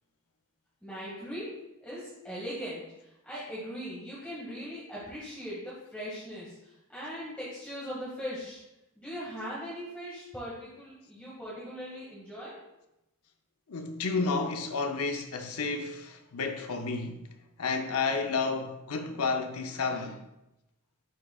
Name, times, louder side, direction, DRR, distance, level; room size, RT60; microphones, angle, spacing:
voice 1, 0.8-1.5 1.8-8.6 9.0-12.6, equal, 5° left, 1.9 m, -40 dB
voice 2, 13.7-17.2 17.6-20.2, left 4 dB, 85° left, 0.7 m, -31 dB
11.0 x 4.9 x 2.4 m
head